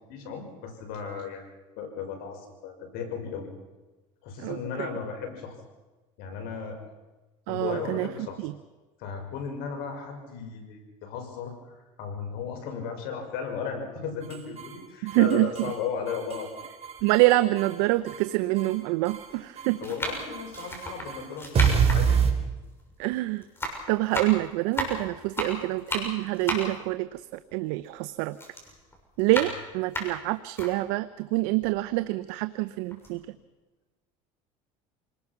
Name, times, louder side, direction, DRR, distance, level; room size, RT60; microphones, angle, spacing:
voice 1, 0.1-1.4 1.8-3.5 4.2-5.5 6.2-6.8 7.5-8.4 9.0-11.5 12.0-16.5 19.8-22.2, left 6 dB, 70° left, 4 dB, 6.0 m, -35 dB
voice 2, 4.4-4.9 7.5-8.1 8.4-8.5 15.0-15.7 17.0-19.8 23.0-23.4 23.9-28.4 29.2-33.2, right 19 dB, 75° right, 13 dB, 0.8 m, -26 dB
sound 1, 14.2-14.8 15.1-15.8 16.1-17.8 18.1-18.8 19.1-19.7 20.1-22.3, right 7 dB, 40° right, 4.2 m, -27 dB
sound 2, 17.0-17.1 18.0-18.1 19.0-19.3 19.8-23.2 23.4-28.0 28.3-30.7 31.2-31.3 31.6-32.6 32.9-33.1, left 1 dB, 15° left, 6.8 m, -34 dB
28.5 x 20.0 x 6.0 m, 1.2 s
supercardioid pair, 105°, 17 cm